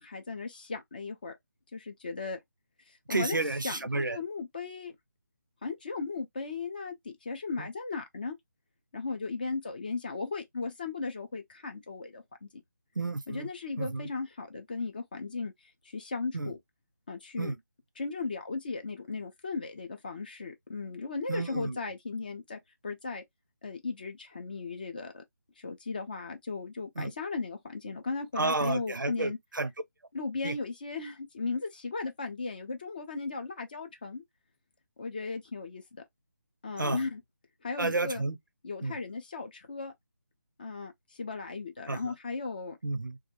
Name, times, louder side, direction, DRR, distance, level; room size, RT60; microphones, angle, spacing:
voice 1, 0.0-1.3 1.7-2.4 2.9-4.9 5.6-8.3 8.9-12.5 13.3-16.6 17.1-17.5 18.0-23.2 23.6-25.2 25.6-29.4 30.1-34.2 35.0-35.8 36.6-37.2 37.6-38.2 38.6-39.9 40.6-42.8, left 4 dB, 30° left, 0.4 m, -36 dB
voice 2, 3.1-4.2 7.6-7.7 13.0-13.5 13.8-14.1 16.3-16.5 17.4-17.6 21.3-21.8 27.0-27.1 28.4-29.7 30.4-30.6 36.8-37.0 37.8-38.4 38.8-39.0 41.9-42.1 42.8-43.2, right 3 dB, 85° right, 0.5 m, -31 dB
2.3 x 2.1 x 2.7 m
figure-of-eight pair, 155°, 10 cm